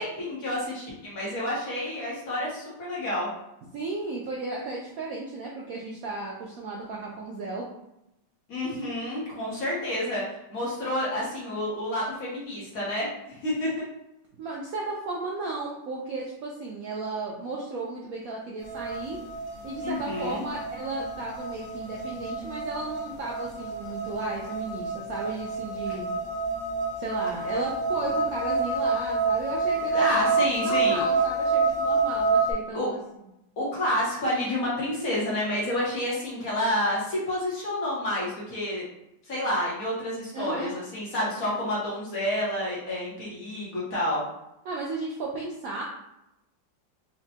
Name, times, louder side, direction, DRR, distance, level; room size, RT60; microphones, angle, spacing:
voice 1, 0.0-3.3 8.5-10.2 10.5-13.8 19.8-20.4 29.9-31.0 32.7-32.9 33.6-38.8 39.3-44.2, left 1 dB, 55° left, -6 dB, 1.2 m, -29 dB
voice 2, 3.7-7.7 14.4-19.2 19.6-26.1 27.0-33.0 40.3-40.7 44.6-45.8, right 3 dB, 85° right, -3 dB, 0.7 m, -34 dB
sound 1, 18.6-32.5, right 3 dB, 80° left, 0.5 m, -28 dB
4.1 x 2.1 x 2.7 m, 0.85 s
omnidirectional pair, 2.1 m